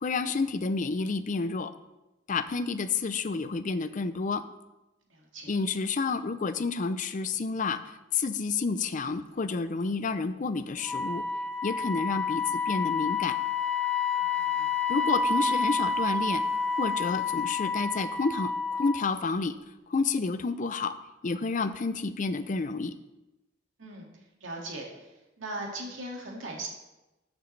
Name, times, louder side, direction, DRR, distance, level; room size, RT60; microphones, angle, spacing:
voice 1, 0.0-1.7 2.3-4.4 5.5-11.2 11.6-13.4 14.9-16.4 16.7-19.6 19.9-21.0 21.2-23.0, left 4 dB, 40° left, 12 dB, 0.5 m, -30 dB
voice 2, 5.1-5.5 14.2-14.7 23.8-24.1 24.4-25.1 25.4-26.7, right 2 dB, 80° right, -1 dB, 2.1 m, -39 dB
Wind instrument woodwind instrument, 10.8-19.1, left 5 dB, 5° left, 0.9 m, -29 dB
13.5 x 6.0 x 3.3 m, 1.0 s
head